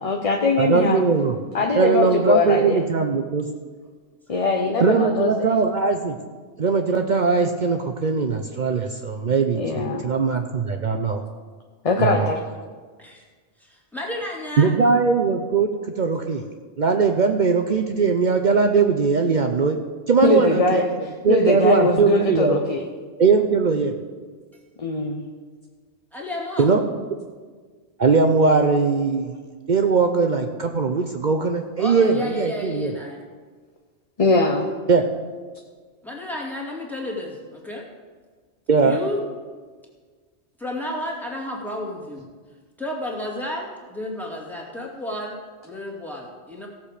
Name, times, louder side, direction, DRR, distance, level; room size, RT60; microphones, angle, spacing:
voice 1, 0.0-1.0 1.5-2.8 4.3-5.5 9.5-10.0 11.8-12.4 20.2-20.9 21.3-22.9 24.8-25.2 34.2-34.7, left 3 dB, 35° left, 2 dB, 0.9 m, -21 dB
voice 2, 0.6-1.3 1.8-3.5 4.8-6.1 6.6-11.2 12.0-12.3 14.6-15.7 16.0-16.4 16.8-19.8 20.1-20.8 21.2-22.6 23.2-23.9 26.6-26.8 28.0-29.3 29.7-32.9 34.9-35.0 38.7-39.0, right 5 dB, 50° right, 5 dB, 0.7 m, -20 dB
voice 3, 13.6-14.7 26.1-26.7 31.8-33.2 36.0-37.9 38.8-39.2 40.6-42.3 42.8-45.4 45.6-46.7, left 1 dB, ahead, -3 dB, 2.2 m, -32 dB
16.5 x 7.0 x 5.0 m, 1.5 s
omnidirectional pair, 1.1 m